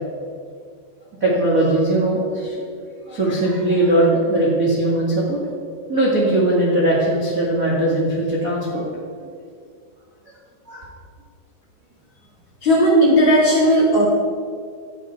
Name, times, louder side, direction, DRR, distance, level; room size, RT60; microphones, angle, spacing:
voice 1, 1.2-2.5 3.1-5.4 5.9-8.8 10.7-10.8, right 1 dB, 70° right, -5 dB, 0.8 m, -19 dB
voice 2, 12.6-14.0, equal, 35° left, -6 dB, 2.4 m, -15 dB
13.5 x 9.3 x 4.5 m, 2.2 s
omnidirectional pair, 5.2 m